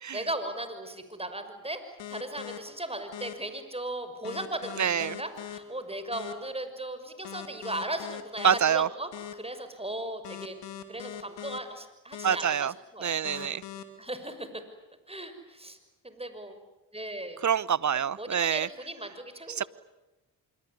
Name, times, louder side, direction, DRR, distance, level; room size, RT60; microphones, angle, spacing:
voice 1, 0.1-10.6 10.9-13.1 14.0-14.6 15.1-15.8 16.0-16.6 16.9-17.4 17.9-19.7, right 1 dB, 15° right, 9 dB, 6.2 m, -37 dB
sound 1, 2.0-2.6 3.1-3.3 4.2-5.6 6.1-6.3 7.2-8.6 9.1-9.3 10.2-11.6 12.1-12.3 13.2-13.8, left 11 dB, 80° left, 2.5 m, -40 dB
voice 2, 4.8-5.2 8.4-8.9 12.2-12.7 13.0-13.6 17.4-18.7 19.6-19.7, right 8 dB, 40° right, 21 dB, 0.9 m, -26 dB
26.0 x 23.5 x 9.8 m, 1.1 s
supercardioid pair, 50°, 43 cm